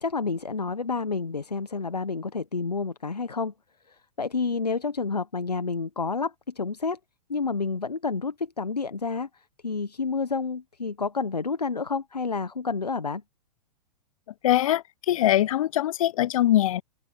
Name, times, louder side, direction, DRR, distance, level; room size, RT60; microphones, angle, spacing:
voice 1, 0.0-3.5 3.9-7.0 7.3-13.2, left 4 dB, 90° left, 1.1 m, -29 dB
voice 2, 14.4-16.8, left 13 dB, 60° left, 0.6 m, -22 dB
open air
figure-of-eight pair, 110°, 20 cm